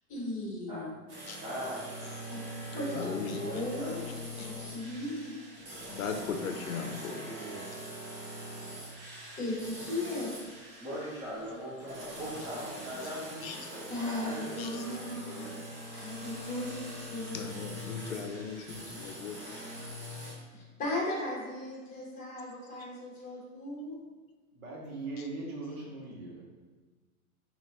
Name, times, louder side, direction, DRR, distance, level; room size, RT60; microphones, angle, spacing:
voice 1, 0.1-0.9 2.3-2.4 2.7-4.0 4.4-5.4 9.3-10.3 13.9-15.5 15.9-16.7 17.0-17.5 20.5-23.9, left 1 dB, 15° left, -5 dB, 1.3 m, -37 dB
sound 1, 1.1-20.3, equal, 30° right, 1.2 m, -43 dB
voice 2, 1.2-1.9 2.7-3.1 3.4-4.1 10.8-15.6, equal, 10° right, -12 dB, 0.5 m, -41 dB
voice 3, 2.9-3.4 4.4-4.5 5.9-7.1 13.4-13.6 14.6-14.8 17.3-19.4, left 6 dB, 65° left, 5 dB, 0.6 m, -37 dB
voice 4, 6.8-7.6 24.5-26.4, right 2 dB, 65° right, -2 dB, 1.4 m, -41 dB
5.7 x 2.9 x 2.9 m, 1.3 s
hypercardioid pair, 145°, 44 cm